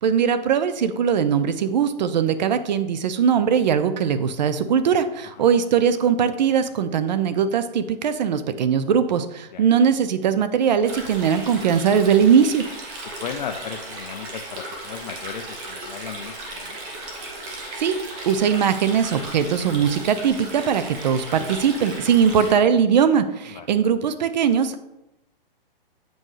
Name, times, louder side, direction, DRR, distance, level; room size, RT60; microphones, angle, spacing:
voice 1, 0.0-12.6 17.5-18.0 18.3-24.8, right 7 dB, 50° right, 12 dB, 0.5 m, -20 dB
Stream, 10.9-22.5, right 2 dB, 25° right, 1.1 m, -36 dB
voice 2, 13.2-16.8 23.5-23.7, left 7 dB, 50° left, 5 dB, 0.5 m, -35 dB
7.7 x 5.1 x 3.2 m, 0.91 s
hypercardioid pair, 160°, 29 cm